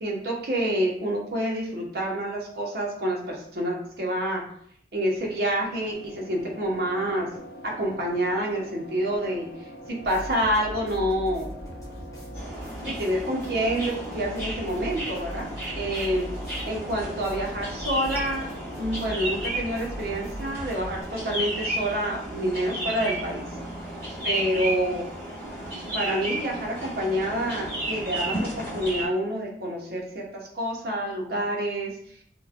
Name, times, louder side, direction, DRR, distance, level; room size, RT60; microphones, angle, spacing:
voice 1, 0.0-4.4 4.9-7.3 7.6-11.5 12.8-15.5 15.8-16.3 16.6-18.4 18.8-23.4 24.2-25.1 25.9-32.2, equal, 60° right, -2 dB, 0.7 m, -28 dB
sound 1, 5.1-21.0, left 1 dB, 55° left, 0.4 m, -44 dB
sound 2, 10.0-21.0, equal, 20° left, 1.0 m, -40 dB
sound 3, 12.3-29.1, right 1 dB, 10° right, 1.2 m, -33 dB
3.0 x 2.1 x 2.4 m, 0.65 s
head